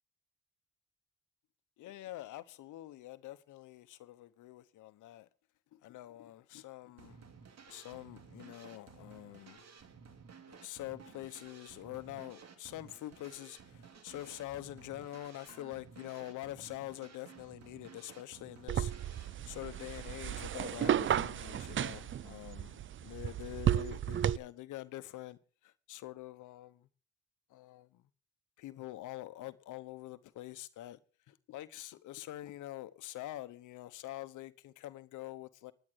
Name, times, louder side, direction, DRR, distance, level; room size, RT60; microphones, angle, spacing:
voice 1, 1.8-5.3 5.7-7.3 7.7-9.6 10.5-26.9 27.5-28.0 28.6-31.0 31.3-35.7, left 15 dB, 85° left, 1.0 m, -46 dB
sound 1, 7.0-22.1, right 6 dB, 60° right, 2.7 m, -55 dB
sound 2, 18.7-24.4, right 10 dB, 40° right, 0.5 m, -33 dB
11.0 x 9.0 x 6.4 m
cardioid pair, 90°, 30 cm